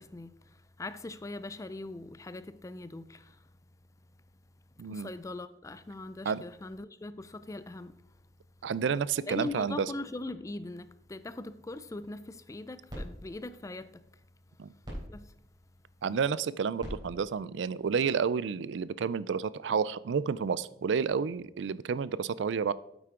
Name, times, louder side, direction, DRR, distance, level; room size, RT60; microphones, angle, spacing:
voice 1, 0.0-3.4 4.8-8.1 9.3-14.1 15.1-15.4, left 2 dB, 20° left, 0.4 m, -41 dB
voice 2, 4.8-5.1 6.3-6.4 8.6-9.9 14.6-14.7 16.0-22.7, right 6 dB, 85° right, 0.4 m, -30 dB
sound 1, 12.3-18.7, equal, 25° right, 3.6 m, -47 dB
8.9 x 8.3 x 3.7 m
head